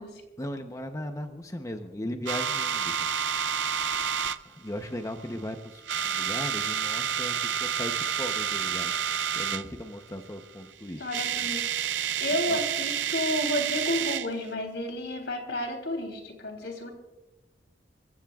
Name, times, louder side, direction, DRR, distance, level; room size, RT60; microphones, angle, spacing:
voice 1, 0.4-3.1 4.4-8.9 9.3-11.1 12.5-12.6, left 1 dB, 20° left, 5 dB, 0.8 m, -37 dB
sound 1, 2.3-4.4 5.1-5.5 5.8-9.7 10.7-10.8 11.0-14.3, right 8 dB, 90° right, 0.5 m, -29 dB
voice 2, 11.0-11.7 12.2-16.9, left 1 dB, 75° left, 5 dB, 3.3 m, -31 dB
28.5 x 15.5 x 2.4 m, 1.1 s
head